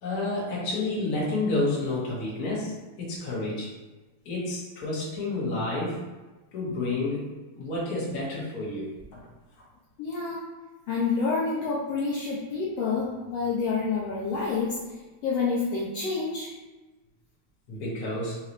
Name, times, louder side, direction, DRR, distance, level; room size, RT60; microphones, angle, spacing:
voice 1, 0.0-3.7 4.2-6.0 6.5-7.3 7.6-8.9 17.7-18.4, left 2 dB, 55° left, -6 dB, 1.0 m, -30 dB
voice 2, 10.0-10.4 10.9-15.0 15.2-16.5, left 4 dB, 75° left, -5 dB, 1.5 m, -28 dB
4.0 x 3.8 x 3.0 m, 1.2 s
omnidirectional pair, 3.4 m